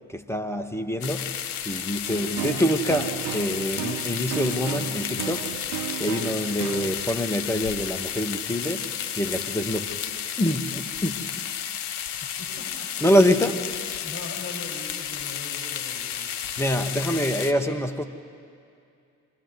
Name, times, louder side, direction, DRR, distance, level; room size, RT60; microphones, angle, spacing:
voice 1, 0.1-1.4 1.6-5.6 6.0-10.0 10.4-11.3 13.0-13.6 16.6-18.0, equal, 5° left, 6 dB, 1.7 m, -25 dB
sound 1, 1.0-17.5, left 9 dB, 75° left, 1.3 m, -32 dB
sound 2, 2.1-7.1, right 18 dB, 65° right, 0.5 m, -34 dB
voice 2, 12.4-13.1 14.0-16.3, left 3 dB, 40° left, -1 dB, 7.5 m, -41 dB
28.0 x 23.5 x 4.9 m, 2.5 s
hypercardioid pair, 50°, 37 cm